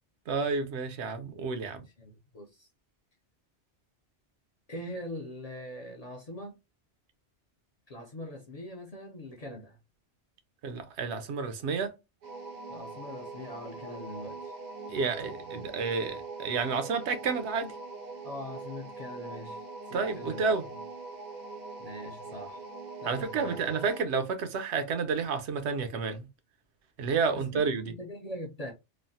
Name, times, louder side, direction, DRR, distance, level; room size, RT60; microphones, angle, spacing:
voice 1, 0.3-1.8 10.6-11.9 14.9-17.7 19.9-20.6 23.0-26.3 27.0-27.9, right 5 dB, 75° right, 0.9 m, -30 dB
voice 2, 1.6-2.7 4.7-6.6 7.9-9.8 12.7-14.6 18.2-20.7 21.8-22.6 23.0-23.6 27.3-28.7, left 1 dB, 45° left, 0.5 m, -42 dB
sound 1, 12.2-24.1, right 3 dB, 55° right, 0.5 m, -42 dB
3.1 x 2.0 x 2.6 m
omnidirectional pair, 1.2 m